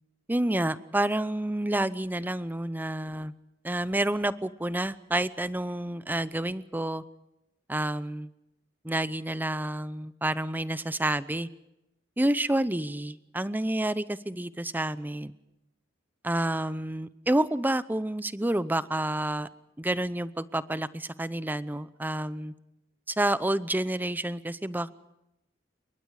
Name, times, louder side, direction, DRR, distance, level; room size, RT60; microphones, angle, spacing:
voice 1, 0.3-3.3 3.6-7.0 7.7-8.3 8.8-11.5 12.2-15.4 16.2-19.5 19.8-22.5 23.1-24.9, right 1 dB, 10° right, 15 dB, 0.7 m, -29 dB
28.0 x 23.0 x 4.9 m, 0.89 s
head